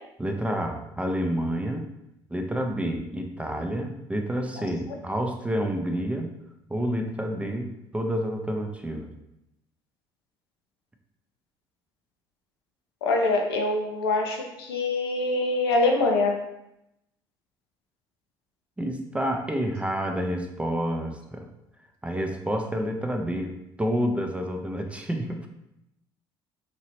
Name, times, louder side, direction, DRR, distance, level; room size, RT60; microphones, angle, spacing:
voice 1, 0.2-1.9 2.3-6.3 6.7-9.1 18.8-21.5 22.0-25.5, equal, 10° right, 4 dB, 0.4 m, -29 dB
voice 2, 13.0-16.4, left 2 dB, 90° left, 2 dB, 0.5 m, -24 dB
3.0 x 2.8 x 2.9 m, 0.85 s
hypercardioid pair, 60°, 13 cm